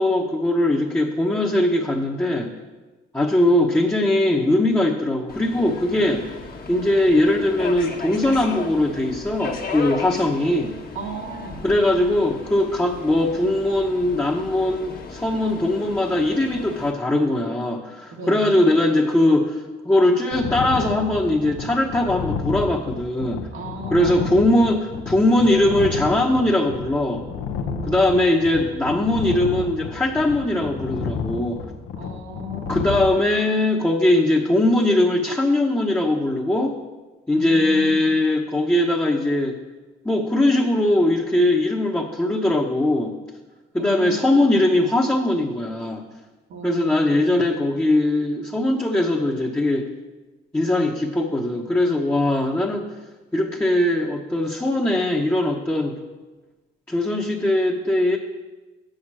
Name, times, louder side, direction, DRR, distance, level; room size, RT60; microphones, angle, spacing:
voice 1, 0.0-2.5 3.1-6.3 6.7-10.7 11.6-23.5 23.9-27.2 27.9-31.6 32.7-36.8 37.3-39.6 40.0-43.1 43.7-46.0 46.6-49.9 50.5-52.9 53.3-56.0 56.9-58.2, left 1 dB, 10° left, -2 dB, 1.0 m, -20 dB
Subway metro underground, 5.3-16.9, left 4 dB, 50° left, 1.4 m, -36 dB
voice 2, 10.9-11.6 18.1-18.8 23.5-24.4 27.6-28.4 32.0-32.8 37.3-38.1 43.8-44.6 46.5-47.3, right 2 dB, 80° right, -1 dB, 2.0 m, -35 dB
sound 1, 20.3-33.1, left 5 dB, 85° left, 0.8 m, -31 dB
7.8 x 6.5 x 7.4 m, 1.2 s
cardioid pair, 90°, 20 cm